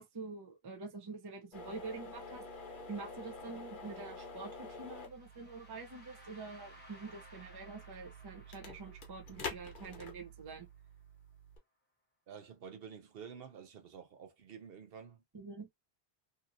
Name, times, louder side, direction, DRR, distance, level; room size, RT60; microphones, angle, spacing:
voice 1, 0.0-2.4 2.9-10.7 15.3-15.7, right 4 dB, 30° right, 0.5 m, -46 dB
sound 1, 1.5-11.6, left 2 dB, 55° left, 0.9 m, -48 dB
sound 2, 4.9-10.9, left 1 dB, 10° left, 1.0 m, -60 dB
voice 2, 12.3-15.2, right 7 dB, 65° right, 0.8 m, -50 dB
2.8 x 2.7 x 2.5 m
omnidirectional pair, 1.1 m